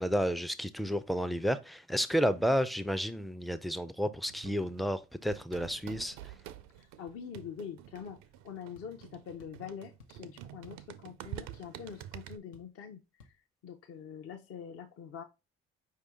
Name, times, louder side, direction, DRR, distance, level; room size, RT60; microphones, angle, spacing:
voice 1, 0.0-6.2, equal, ahead, 0.4 m, -31 dB
sound 1, 4.3-12.4, right 12 dB, 65° right, 0.5 m, -48 dB
voice 2, 6.8-13.4 13.6-15.2, left 7 dB, 50° left, 0.6 m, -45 dB
sound 2, 8.7-8.9 9.4-9.6 10.0-10.2 10.6-10.9 11.1-11.6 11.9-12.0 12.5-12.8 13.2-13.4, left 5 dB, 80° left, 0.7 m, -58 dB
4.8 x 2.8 x 3.5 m
hypercardioid pair, 50°, 31 cm